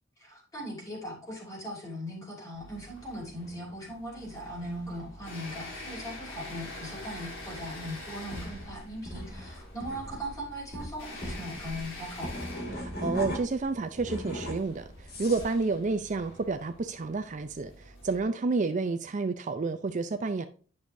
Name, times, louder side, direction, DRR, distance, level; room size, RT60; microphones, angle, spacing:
voice 1, 0.2-12.3, equal, 15° left, 3.0 m, -39 dB
sound 1, 2.5-18.2, left 2 dB, 85° left, 3.2 m, -46 dB
sound 2, 8.3-13.6 14.0-15.5, equal, 50° left, 2.0 m, -38 dB
voice 2, 12.8-20.5, right 3 dB, 40° right, 0.4 m, -30 dB
9.5 x 6.3 x 2.6 m
head